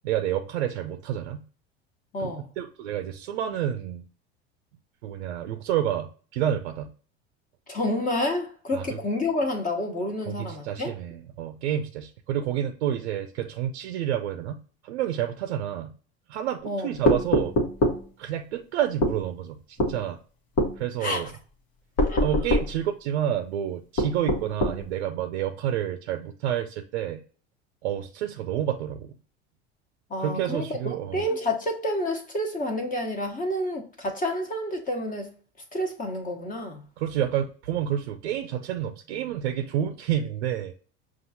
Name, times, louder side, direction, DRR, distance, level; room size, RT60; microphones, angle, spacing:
voice 1, 0.0-1.4 2.2-4.0 5.0-6.9 8.7-9.0 10.3-14.6 14.8-15.9 16.3-17.5 18.2-20.2 20.8-21.3 22.2-27.2 27.8-29.1 30.2-31.2 37.0-40.7, right 10 dB, 90° right, 0.5 m, -29 dB
voice 2, 2.1-2.5 7.7-10.9 16.6-16.9 21.0-21.3 22.0-22.2 30.1-30.8 31.1-35.3 35.7-36.8, left 1 dB, 25° left, 1.0 m, -29 dB
sound 1, 17.1-18.0 19.0-19.2 19.8-20.0 20.6-20.8 22.0-22.7 24.0-24.8, equal, 65° left, 1.3 m, -23 dB
5.7 x 2.5 x 2.6 m
hypercardioid pair, 90°, 32 cm